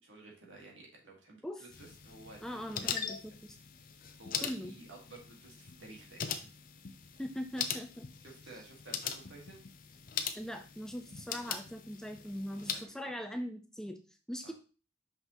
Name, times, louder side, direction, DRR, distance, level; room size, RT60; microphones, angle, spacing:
voice 1, 0.0-3.1 4.2-6.5 8.2-9.6 12.2-13.1 14.4-14.5, right 2 dB, 80° right, -1 dB, 2.0 m, -53 dB
sound 1, 1.7-12.8, left 7 dB, 50° left, 0.6 m, -41 dB
voice 2, 2.4-3.6 4.4-4.8 7.2-8.1 10.3-14.0 14.3-14.5, equal, 5° left, 6 dB, 0.5 m, -41 dB
5.7 x 5.5 x 3.0 m, 0.35 s
head